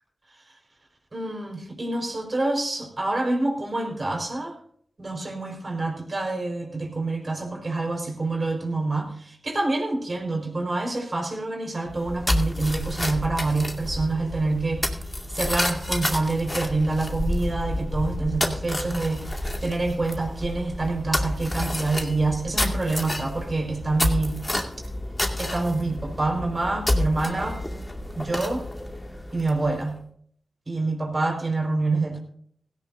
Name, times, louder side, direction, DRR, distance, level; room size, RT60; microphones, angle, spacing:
voice 1, 1.1-4.6 5.0-14.9 15.3-24.4 25.4-27.6 28.2-28.6 29.3-30.0 30.7-32.2, right 2 dB, 45° right, 2 dB, 5.3 m, -27 dB
sound 1, 11.9-29.8, left 1 dB, 25° left, 2.3 m, -29 dB
17.0 x 16.5 x 2.8 m, 0.62 s
cardioid pair, 50°, 0 cm